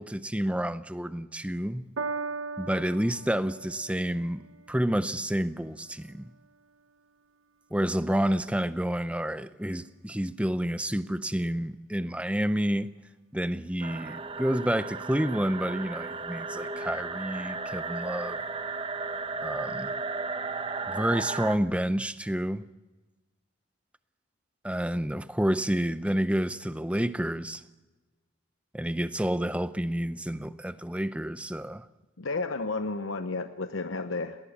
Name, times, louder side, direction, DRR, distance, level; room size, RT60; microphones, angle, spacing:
voice 1, 0.0-1.8 2.6-4.4 4.7-6.3 7.7-12.9 13.3-18.4 19.4-19.9 20.9-22.6 24.6-27.6 28.7-31.9, equal, 5° right, 0.6 m, -29 dB
Piano, 2.0-8.5 9.4-9.5, right 4 dB, 90° right, 1.1 m, -41 dB
sound 1, 13.8-21.6, right 4 dB, 25° right, 0.9 m, -35 dB
voice 2, 32.2-34.4, left 3 dB, 85° left, 0.9 m, -32 dB
20.0 x 19.0 x 7.3 m
head